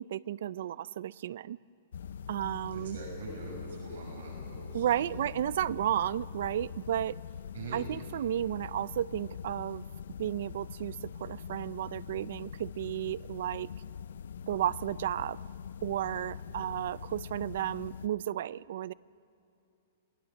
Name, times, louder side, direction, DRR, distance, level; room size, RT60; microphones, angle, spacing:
voice 1, 0.0-1.6 2.3-3.0 4.7-7.2 7.7-9.8 10.2-13.7 14.5-15.4 15.8-18.9, right 11 dB, 50° right, 20 dB, 0.4 m, -33 dB
sound 1, 1.9-18.1, left 7 dB, 75° left, 0.4 m, -43 dB
voice 2, 2.7-5.2 7.5-7.8 16.5-16.6, right 3 dB, 65° right, -1 dB, 5.9 m, -43 dB
28.0 x 19.0 x 6.2 m, 2.7 s
hypercardioid pair, 175°, 0 cm